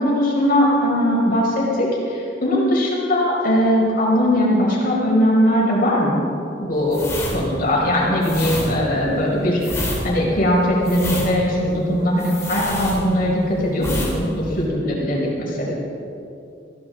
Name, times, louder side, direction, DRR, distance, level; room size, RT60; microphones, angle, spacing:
voice 1, 0.0-6.2 6.6-7.1 7.3-15.7, equal, 50° left, -4 dB, 5.2 m, -20 dB
sound 1, 6.9-13.4 13.8-14.2 14.4-14.6, left 1 dB, 15° left, 4.1 m, -28 dB
22.5 x 16.0 x 3.9 m, 2.7 s
head